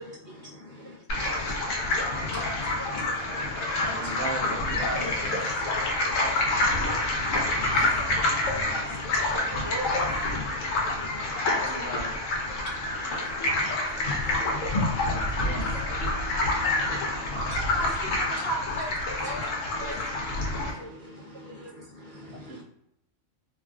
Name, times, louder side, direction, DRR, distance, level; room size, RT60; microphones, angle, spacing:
voice 1, 0.0-4.1 5.7-9.5 10.3-11.6 12.4-17.4 18.3-18.4 19.2-19.4 19.7-22.6, left 2 dB, 55° left, -6 dB, 0.5 m, -41 dB
sound 1, 1.1-20.7, left 2 dB, 80° left, 1.0 m, -27 dB
voice 2, 3.8-5.5 11.4-12.2 15.1-15.7 22.3-22.6, right 1 dB, 70° right, -1 dB, 0.8 m, -37 dB
voice 3, 9.3-10.1 17.3-17.5 17.7-19.4 19.7-19.9 20.8-20.9 21.6-21.7, right 2 dB, 45° right, -5 dB, 0.3 m, -36 dB
2.9 x 2.4 x 2.3 m, 0.75 s
omnidirectional pair, 1.3 m